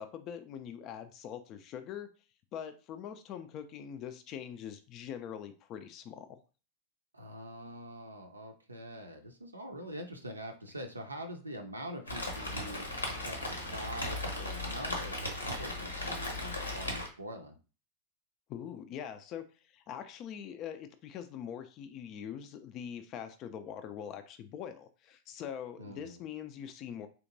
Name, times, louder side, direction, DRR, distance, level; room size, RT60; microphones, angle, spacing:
voice 1, 0.0-2.1 2.5-6.4 18.5-27.1, left 9 dB, 35° left, 8 dB, 0.3 m, -43 dB
voice 2, 7.1-17.5 25.8-26.2, right 1 dB, 80° right, 4 dB, 0.5 m, -44 dB
Rain, 12.1-17.1, left 2 dB, 80° left, 0.8 m, -37 dB
3.5 x 2.8 x 2.6 m, 0.35 s
figure-of-eight pair, 90°, 0 cm